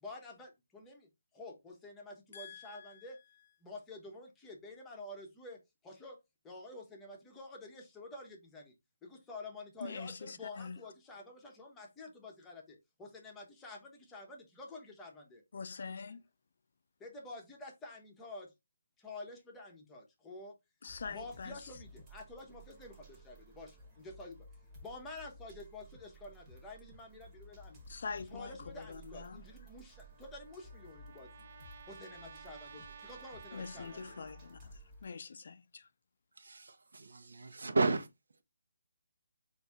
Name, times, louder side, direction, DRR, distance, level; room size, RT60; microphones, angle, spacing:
voice 1, 0.0-3.2 3.6-6.2 6.4-8.7 9.0-15.4 17.0-18.5 19.0-20.5 21.1-24.5 24.8-27.8 28.3-31.5 31.9-34.2, left 2 dB, 10° left, 0.8 m, -49 dB
voice 2, 2.3-3.2 9.8-10.8 15.5-16.2 20.8-21.7 27.9-29.4 33.5-35.9, left 5 dB, 55° left, 0.4 m, -44 dB
sound 1, 20.9-35.1, right 1 dB, 15° right, 1.2 m, -56 dB
Trumpet, 29.9-34.7, right 5 dB, 45° right, 0.7 m, -54 dB
voice 3, 36.4-38.1, right 3 dB, 75° right, 0.9 m, -33 dB
4.1 x 2.6 x 3.4 m
hypercardioid pair, 165°, 0 cm